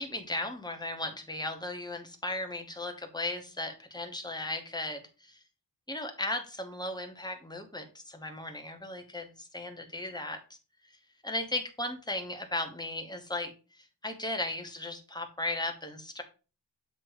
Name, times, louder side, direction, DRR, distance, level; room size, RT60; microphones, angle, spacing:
voice 1, 0.0-5.4 5.9-10.4 11.2-16.2, left 2 dB, 10° left, 4 dB, 1.1 m, -36 dB
7.8 x 3.0 x 4.8 m, 0.33 s
wide cardioid pair, 120°, 42 cm